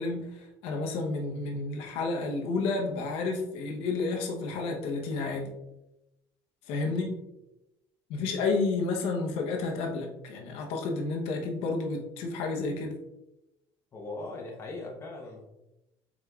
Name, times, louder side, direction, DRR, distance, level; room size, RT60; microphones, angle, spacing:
voice 1, 0.0-5.5 6.7-7.1 8.1-12.9, left 3 dB, 80° left, 1 dB, 0.8 m, -31 dB
voice 2, 13.9-15.5, left 2 dB, 25° left, -1 dB, 0.9 m, -40 dB
4.8 x 4.0 x 2.3 m, 0.90 s
cardioid pair, 165°, 10 cm